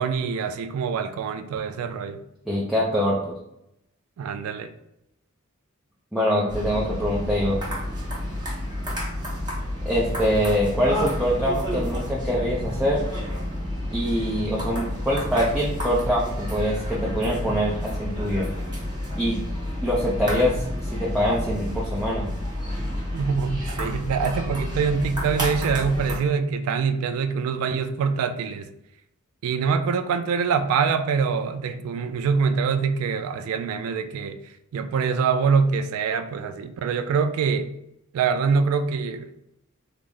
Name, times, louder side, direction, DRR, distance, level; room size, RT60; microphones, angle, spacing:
voice 1, 0.0-2.2 4.2-4.7 23.1-28.7 29.4-34.4 34.7-37.7 38.1-39.4, right 5 dB, 80° right, 13 dB, 0.3 m, -24 dB
voice 2, 2.5-3.4 6.1-7.6 9.9-13.0 13.9-18.5 19.1-19.4 19.8-22.3, equal, 5° right, -6 dB, 0.5 m, -24 dB
sound 1, 6.5-26.2, left 1 dB, 20° right, 0.9 m, -30 dB
3.4 x 2.0 x 3.6 m, 0.81 s
head